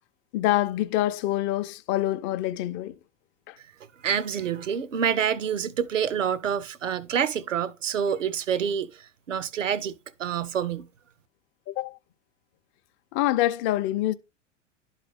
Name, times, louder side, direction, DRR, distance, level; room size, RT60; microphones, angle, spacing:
voice 1, 0.3-3.0 3.5-3.6 11.7-12.0 13.1-14.1, left 14 dB, 30° left, 0.6 m, -26 dB
voice 2, 4.0-9.9 10.2-10.9, right 8 dB, 75° right, 0.8 m, -27 dB
11.5 x 4.1 x 3.4 m
figure-of-eight pair, 95°, 38 cm